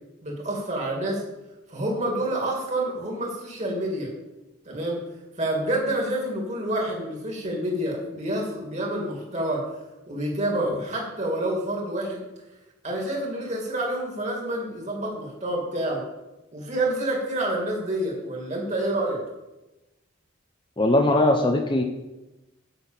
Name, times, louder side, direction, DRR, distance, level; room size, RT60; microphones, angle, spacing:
voice 1, 0.2-1.2 1.7-4.1 4.7-5.1 5.4-9.7 10.1-12.2 12.8-16.1 16.5-19.2, right 1 dB, 35° right, -1 dB, 2.5 m, -28 dB
voice 2, 20.8-21.8, left 1 dB, 25° left, 4 dB, 0.7 m, -20 dB
8.0 x 6.2 x 7.5 m, 1.0 s
head